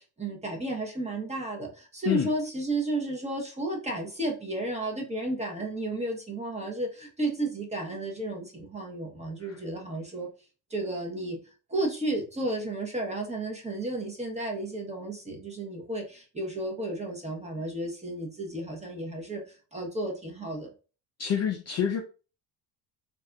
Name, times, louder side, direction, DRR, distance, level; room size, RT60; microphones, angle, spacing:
voice 1, 0.0-10.3 10.7-11.4 11.7-19.4 19.7-20.7, right 2 dB, 15° right, 0.9 m, -33 dB
voice 2, 21.2-22.0, left 9 dB, 35° left, 0.4 m, -27 dB
3.3 x 2.6 x 2.3 m
supercardioid pair, 90°, 48 cm